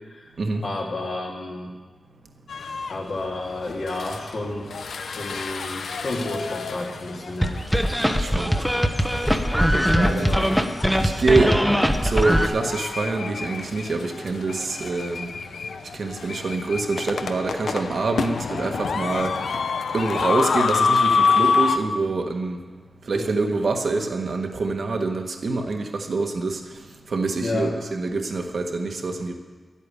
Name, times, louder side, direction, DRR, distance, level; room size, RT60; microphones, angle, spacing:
voice 1, 0.6-1.7 2.9-4.7 5.0-7.6 8.3-8.4 9.9-10.5 23.1-23.4 27.4-27.8, left 2 dB, 60° left, -1 dB, 2.8 m, -31 dB
sound 1, 2.5-3.0 3.5-21.8, left 5 dB, 90° left, 0.7 m, -28 dB
sound 2, 7.4-12.5, equal, ahead, 0.8 m, -21 dB
voice 2, 8.2-8.7 9.7-10.3 11.0-11.7 12.0-15.3 15.9-19.5 19.9-22.6 23.0-26.6 27.1-29.4, right 3 dB, 60° right, 4 dB, 1.3 m, -25 dB
12.5 x 8.6 x 9.8 m, 1.4 s
wide cardioid pair, 150°, 0 cm